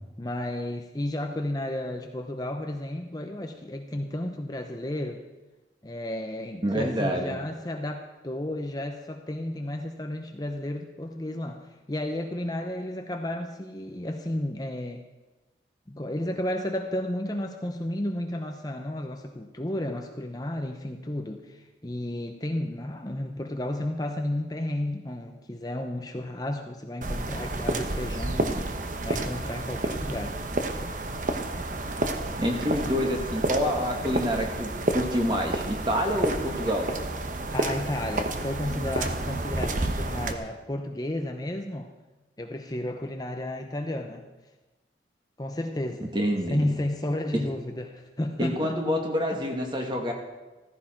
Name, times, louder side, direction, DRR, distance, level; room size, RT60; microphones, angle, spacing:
voice 1, 0.2-5.2 5.8-15.1 15.9-28.6 29.0-30.4 37.5-41.9 42.4-44.3 45.4-46.1 46.5-48.8 49.3-49.4, left 1 dB, 20° left, 4 dB, 0.7 m, -32 dB
voice 2, 6.6-7.4 32.4-36.9 46.1-46.6 47.3-47.4 48.4-50.1, equal, 25° right, 2 dB, 2.0 m, -27 dB
sound 1, 27.0-40.3, right 2 dB, 45° right, 1.0 m, -30 dB
15.0 x 14.5 x 4.5 m, 1.2 s
head